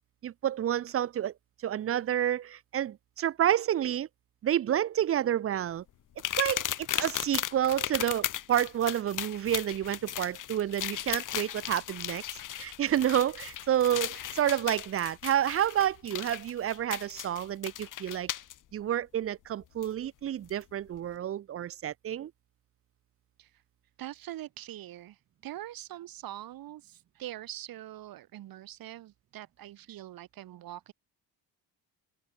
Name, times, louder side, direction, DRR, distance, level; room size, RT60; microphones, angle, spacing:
voice 1, 0.2-1.3 1.6-4.1 4.4-5.8 6.4-12.2 12.6-18.3 18.7-22.3, right 11 dB, 35° right, 0.5 m, -29 dB
sound 1, 6.2-18.5 19.8-19.9 20.5-20.6, left 11 dB, 45° left, 1.0 m, -36 dB
voice 2, 24.0-30.9, right 13 dB, 50° right, 0.9 m, -43 dB
cardioid pair, 90°, 43 cm